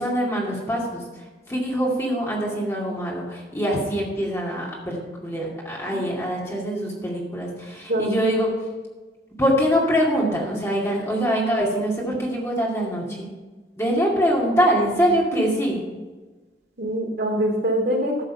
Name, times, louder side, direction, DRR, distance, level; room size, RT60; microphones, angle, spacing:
voice 1, 0.0-8.5 9.4-13.3 13.8-15.8, equal, 15° left, -3 dB, 2.3 m, -24 dB
voice 2, 16.8-18.2, equal, 80° right, -1 dB, 3.0 m, -24 dB
13.0 x 6.6 x 5.7 m, 1.3 s
head